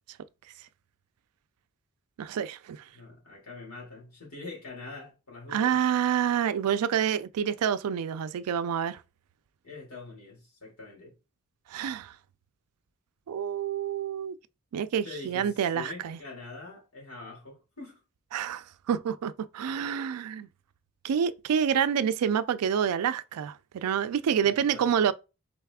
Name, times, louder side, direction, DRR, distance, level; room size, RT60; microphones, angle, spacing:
voice 1, 2.2-2.8 5.5-9.0 11.7-12.1 13.3-14.4 14.7-16.2 18.3-20.5 21.0-25.1, right 8 dB, 90° right, 0.3 m, -28 dB
voice 2, 2.9-5.8 9.6-11.2 15.0-18.0 24.4-25.0, left 3 dB, 85° left, 2.3 m, -44 dB
4.0 x 3.2 x 3.5 m
head